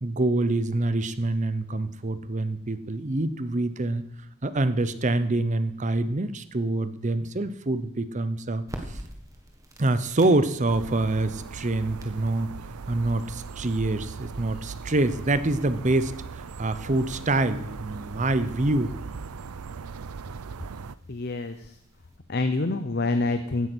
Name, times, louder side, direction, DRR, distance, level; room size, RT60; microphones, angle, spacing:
voice 1, 0.0-4.0 4.4-9.0 9.8-12.5 12.9-18.9, right 2 dB, 35° right, 13 dB, 0.7 m, -26 dB
sound 1, 8.7-22.2, right 1 dB, 15° right, 1.7 m, -49 dB
sound 2, 10.7-21.0, right 5 dB, 80° right, 0.6 m, -39 dB
voice 2, 21.1-21.8 22.3-23.7, left 2 dB, 45° left, 9 dB, 0.7 m, -27 dB
16.0 x 9.4 x 6.2 m, 0.79 s
head